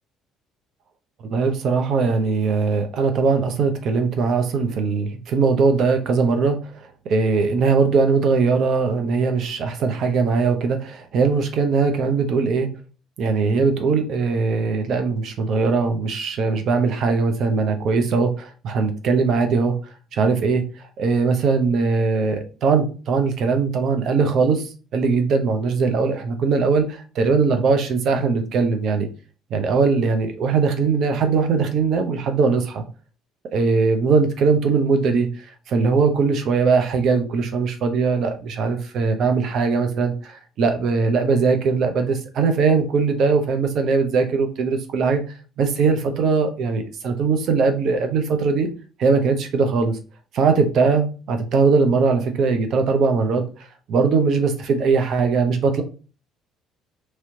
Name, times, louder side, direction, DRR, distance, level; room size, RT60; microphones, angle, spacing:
voice 1, 1.3-6.6 7.1-12.7 13.2-19.7 20.1-20.6 21.0-29.1 29.5-32.8 33.5-35.3 35.7-45.2 45.6-48.7 49.0-50.0 50.3-53.4 53.9-55.8, right 4 dB, 60° right, 6 dB, 0.7 m, -20 dB
3.1 x 3.0 x 2.7 m, 0.36 s
supercardioid pair, 65°, 0 cm